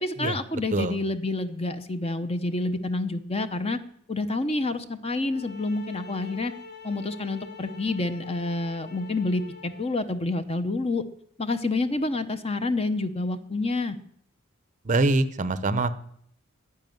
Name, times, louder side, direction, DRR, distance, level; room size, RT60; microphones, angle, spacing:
voice 1, 0.0-3.8 4.1-6.5 6.8-11.0 11.4-14.0, left 2 dB, 30° left, 10 dB, 0.8 m, -28 dB
sound 1, 5.1-10.1, left 5 dB, 50° left, 1.4 m, -45 dB
voice 2, 14.9-15.9, right 2 dB, 35° right, 13 dB, 0.7 m, -24 dB
10.5 x 9.8 x 9.3 m, 0.69 s
head